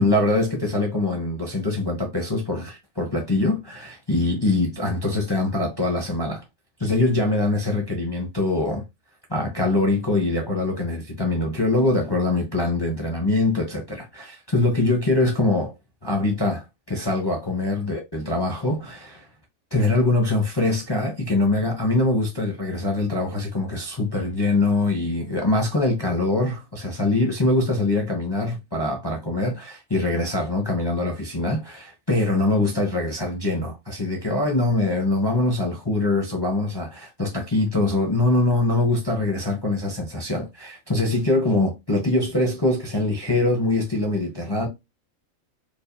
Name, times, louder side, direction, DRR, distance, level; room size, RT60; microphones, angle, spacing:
voice 1, 0.0-6.4 6.8-8.8 9.3-15.7 16.0-19.3 19.7-44.7, left 2 dB, 20° left, 0.8 m, -23 dB
4.6 x 2.5 x 2.6 m
omnidirectional pair, 1.4 m